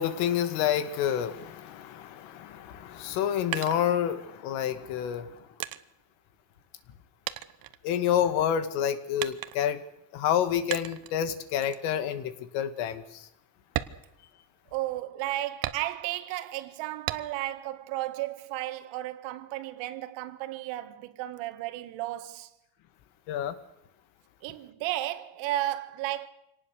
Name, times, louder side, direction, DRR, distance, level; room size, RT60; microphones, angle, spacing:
voice 1, 0.0-5.5 7.8-9.8 10.1-13.3 23.3-23.6, left 9 dB, 90° left, 2.3 m, -28 dB
sound 1, 3.0-4.5 5.1-7.0 7.3-8.4 9.2-9.8 10.7-11.2 11.6-11.9 12.3-12.4 12.8-13.0 13.6-14.8 15.6-16.3 17.1-17.6 18.0-18.8, right 14 dB, 45° right, 1.1 m, -37 dB
voice 2, 14.7-22.5 24.4-26.3, right 15 dB, 75° right, 1.9 m, -34 dB
24.5 x 18.5 x 6.6 m
cardioid pair, 150°, 46 cm